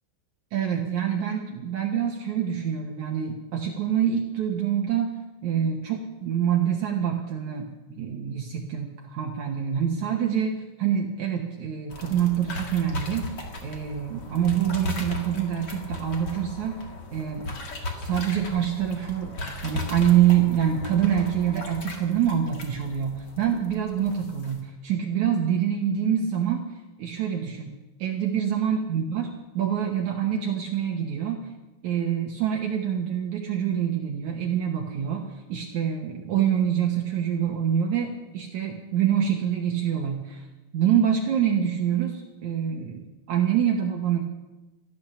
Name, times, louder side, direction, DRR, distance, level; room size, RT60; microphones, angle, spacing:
voice 1, 0.5-5.1 5.4-13.2 13.6-16.8 17.1-17.5 18.0-26.6 27.0-31.4 31.8-40.5 40.7-44.2, right 9 dB, 85° right, 2 dB, 1.6 m, -26 dB
sound 1, 11.9-24.6, left 2 dB, 45° left, 1.3 m, -36 dB
15.5 x 12.0 x 6.8 m, 1.1 s
omnidirectional pair, 5.1 m